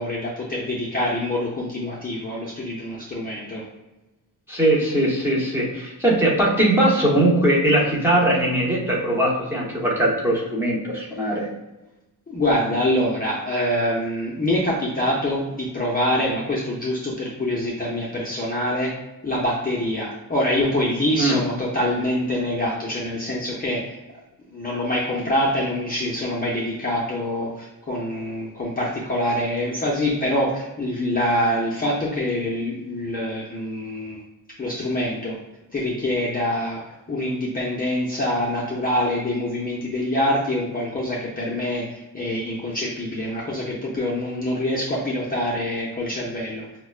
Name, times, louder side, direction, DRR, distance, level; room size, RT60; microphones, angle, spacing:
voice 1, 0.0-3.6 11.2-11.3 12.3-18.9 19.2-23.8 24.5-34.2 34.6-35.4 35.7-46.7, left 1 dB, 25° left, -5 dB, 0.5 m, -25 dB
voice 2, 4.5-11.5 21.2-21.4, right 1 dB, 5° right, -6 dB, 0.8 m, -20 dB
5.7 x 2.1 x 2.3 m, 1.0 s
wide cardioid pair, 170°, 38 cm